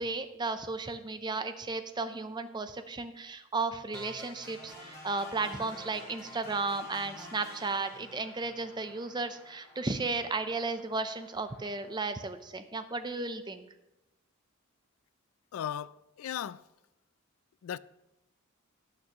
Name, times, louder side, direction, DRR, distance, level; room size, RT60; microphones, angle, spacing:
voice 1, 0.0-13.7, right 3 dB, 20° right, 0.5 m, -34 dB
sound 1, 3.9-11.9, equal, 15° left, 3.5 m, -50 dB
voice 2, 15.5-16.6 17.6-17.8, left 9 dB, 75° left, 0.3 m, -37 dB
17.5 x 6.0 x 3.0 m
head